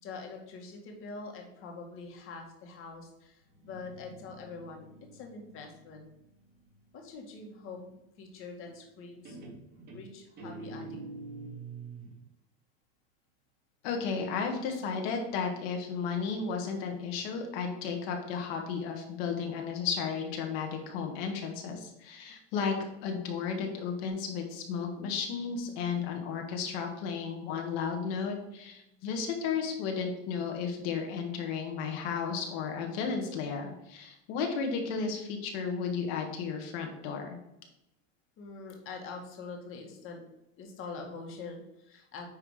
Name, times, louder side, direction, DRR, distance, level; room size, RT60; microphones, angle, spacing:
voice 1, 0.0-4.9 5.1-6.0 6.9-9.4 9.9-11.0 38.4-40.2 40.6-42.3, left 4 dB, 40° left, 2 dB, 1.8 m, -44 dB
Guitar, 3.5-7.1 8.6-9.0 9.3-12.2, right 3 dB, 30° right, 2.2 m, -46 dB
voice 2, 13.8-22.7 23.0-37.3, left 5 dB, 60° left, 3 dB, 1.5 m, -33 dB
Bass guitar, 24.1-30.3, right 1 dB, 65° right, 1.3 m, -59 dB
9.8 x 3.3 x 4.9 m, 0.86 s
supercardioid pair, 150°, 34 cm